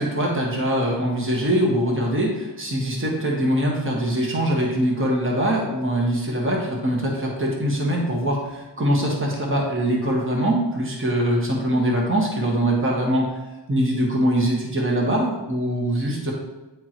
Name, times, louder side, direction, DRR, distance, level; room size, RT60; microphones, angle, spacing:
voice 1, 0.0-13.4 13.7-16.3, right 1 dB, 30° right, -2 dB, 1.3 m, -23 dB
9.0 x 3.6 x 3.0 m, 1.1 s
wide cardioid pair, 75°, 44 cm